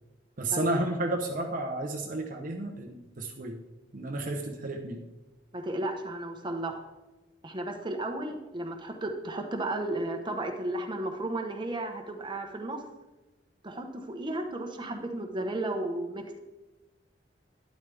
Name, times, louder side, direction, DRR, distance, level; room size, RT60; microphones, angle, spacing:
voice 1, 0.4-3.6 3.9-5.0, right 2 dB, 50° right, 2 dB, 1.0 m, -32 dB
voice 2, 5.5-6.8 7.4-12.9 13.6-16.4, right 1 dB, 25° right, 3 dB, 1.2 m, -34 dB
12.0 x 10.5 x 3.5 m, 1.1 s
head